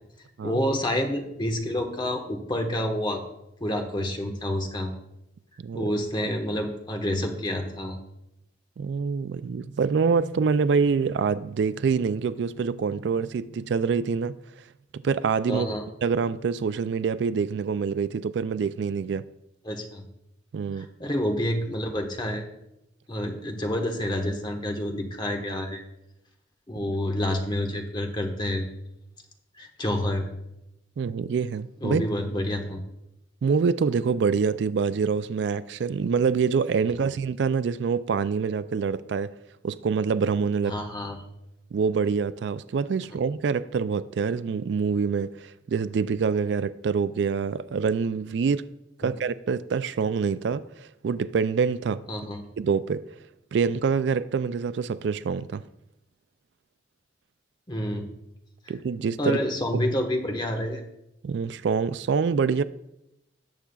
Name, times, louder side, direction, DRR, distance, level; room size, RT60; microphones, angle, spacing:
voice 1, 0.4-3.2 3.6-4.9 5.7-8.0 15.5-15.8 19.6-20.0 20.8-22.4 23.1-25.8 26.7-28.7 29.6-30.2 31.8-32.8 37.0-37.1 40.7-41.1 49.0-49.1 52.1-52.4 57.7-58.1 59.2-60.8, left 1 dB, 25° left, 1.3 m, -28 dB
voice 2, 5.6-5.9 8.8-14.4 14.9-15.7 16.0-19.2 20.5-20.9 31.0-32.1 33.4-39.3 39.6-40.8 41.7-48.7 49.0-52.0 52.6-53.1 53.5-55.6 58.7-59.4 61.2-62.6, right 5 dB, 70° right, 0.3 m, -26 dB
18.0 x 7.3 x 2.3 m
head